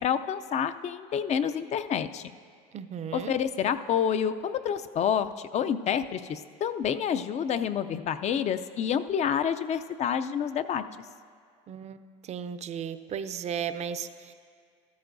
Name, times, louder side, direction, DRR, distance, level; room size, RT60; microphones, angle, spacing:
voice 1, 0.0-2.3 3.1-10.8, left 8 dB, 40° left, 11 dB, 0.5 m, -28 dB
voice 2, 2.7-3.3 11.7-14.3, right 8 dB, 40° right, 12 dB, 0.5 m, -35 dB
14.0 x 13.5 x 2.6 m, 2.1 s
supercardioid pair, 95°, 17 cm